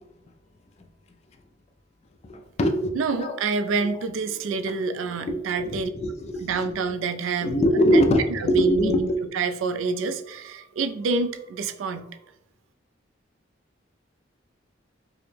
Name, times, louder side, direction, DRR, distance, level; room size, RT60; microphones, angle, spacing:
voice 1, 2.2-3.4 3.8-3.9 5.3-6.7 7.4-9.2, equal, 35° left, 5 dB, 0.3 m, -23 dB
voice 2, 3.0-5.9 6.4-7.6 8.4-9.1 9.3-12.0, right 4 dB, 90° right, 9 dB, 0.4 m, -27 dB
4.7 x 2.0 x 3.2 m, 0.87 s
head